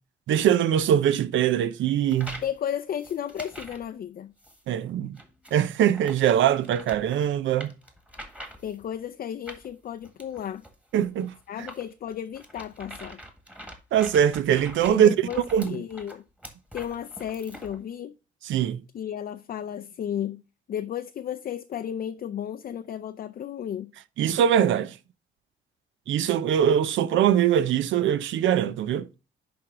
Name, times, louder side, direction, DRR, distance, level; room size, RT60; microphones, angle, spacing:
voice 1, 0.3-2.4 4.7-5.2 5.5-7.7 10.9-11.3 13.9-15.1 15.5-15.7 18.5-18.8 24.2-24.9 26.1-29.1, right 9 dB, 75° right, 0.6 m, -22 dB
sound 1, 2.1-2.6 3.0-3.9 4.4-4.6 5.2-8.9 9.5-17.8, equal, 5° right, 1.7 m, -44 dB
voice 2, 2.4-4.3 8.6-10.6 11.5-13.2 14.9-16.2 16.7-18.1 18.9-20.4 20.7-23.9, left 9 dB, 50° left, 0.5 m, -33 dB
10.0 x 3.5 x 3.7 m
cardioid pair, 90°, 20 cm